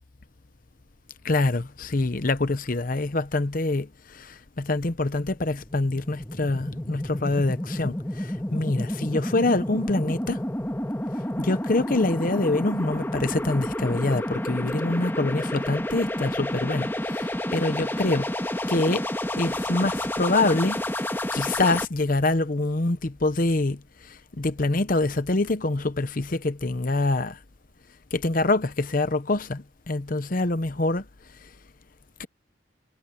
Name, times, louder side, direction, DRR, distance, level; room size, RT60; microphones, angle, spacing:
voice 1, 1.2-3.9 4.1-10.4 11.4-18.3 18.7-19.0 19.4-20.8 21.3-23.8 24.4-27.4 28.1-31.0 32.2-32.3, left 2 dB, 45° left, 0.8 m, -25 dB
sound 1, 5.3-21.8, left 1 dB, 10° left, 1.9 m, -30 dB
head